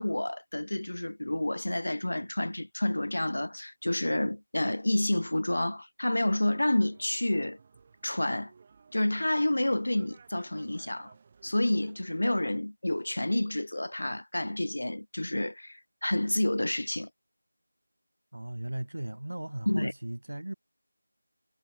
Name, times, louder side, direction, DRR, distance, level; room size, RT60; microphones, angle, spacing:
voice 1, 0.0-7.6 8.0-8.5 8.9-11.1 11.4-17.1 19.7-19.9, left 1 dB, 70° left, 0.7 m, -29 dB
sound 1, 6.1-12.3, right 5 dB, 25° right, 3.2 m, -58 dB
voice 2, 18.3-20.5, right 1 dB, 70° right, 1.8 m, -37 dB
figure-of-eight pair, 170°, 0 cm